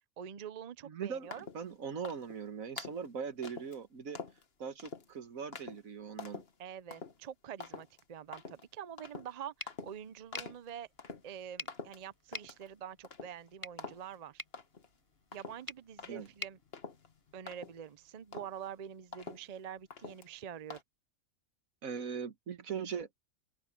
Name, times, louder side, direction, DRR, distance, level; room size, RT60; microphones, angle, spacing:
voice 1, 0.2-1.5 6.6-10.9 11.2-14.4 15.3-16.6 17.3-20.8, right 9 dB, 50° right, 0.5 m, -46 dB
voice 2, 0.8-4.2 4.6-6.4 16.1-16.3 21.8-23.2, right 6 dB, 75° right, 1.8 m, -40 dB
sound 1, 1.3-1.7 2.0-2.4 2.8-3.1 3.4-3.8 4.1-4.4 4.8-5.1 5.5-5.8 6.2-6.5 6.9-7.2 7.6-8.0 8.3-8.6 9.0-9.3 9.7-10.0 10.3-10.7 11.0-11.4 11.7-12.7 13.0-13.5 13.8-14.1 14.5-14.9 15.3-18.0 18.3-18.7 19.1-19.6 19.9-20.3 20.7-20.8, left 4 dB, 45° left, 1.6 m, -46 dB
sound 2, 9.6-17.6, left 1 dB, 15° left, 5.8 m, -50 dB
open air
omnidirectional pair, 1.5 m